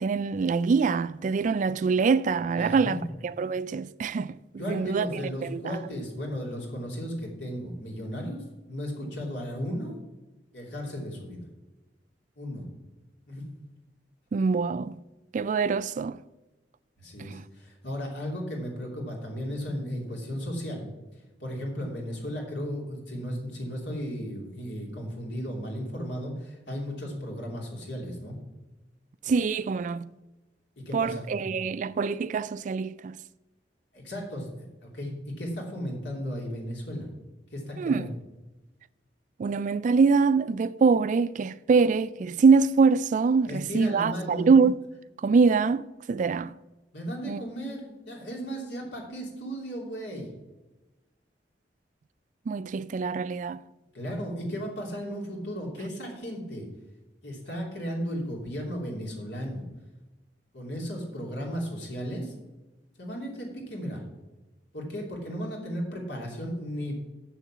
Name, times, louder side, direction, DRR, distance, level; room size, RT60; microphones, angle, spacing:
voice 1, 0.0-4.4 4.7-5.8 14.3-15.0 15.3-16.2 17.2-17.4 29.3-30.1 30.9-33.2 37.8-38.1 39.4-44.8 45.2-46.6 47.3-47.4 52.5-53.6, right 5 dB, 45° right, 0.3 m, -24 dB
voice 2, 2.5-3.0 4.6-9.9 10.5-11.5 12.4-12.6 13.3-13.5 17.0-20.9 21.4-28.4 30.8-31.4 33.9-34.5 34.8-37.1 37.5-38.2 43.5-44.5 46.9-50.3 53.9-56.7 57.2-59.6 60.5-62.3 63.0-64.0 64.7-67.0, equal, 75° left, 3.0 m, -35 dB
7.3 x 6.7 x 7.3 m
head